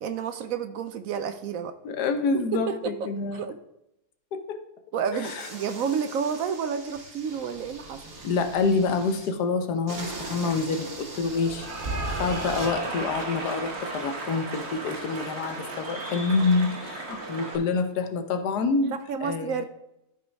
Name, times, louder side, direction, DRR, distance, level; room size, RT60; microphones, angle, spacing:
voice 1, 0.0-1.7 2.3-3.6 4.9-8.0 19.1-19.6, right 7 dB, 70° right, 10 dB, 0.9 m, -30 dB
voice 2, 1.8-3.4 4.3-4.6 5.1-5.5 8.2-11.7 12.1-18.9 19.2-19.6, left 4 dB, 85° left, 7 dB, 1.4 m, -27 dB
sound 1, 5.2-9.3 9.9-12.7, right 3 dB, 85° right, 2.2 m, -41 dB
Cheering / Applause, 11.3-17.6, right 2 dB, 45° right, 1.4 m, -34 dB
13.0 x 4.7 x 3.4 m, 0.85 s
omnidirectional pair, 1.7 m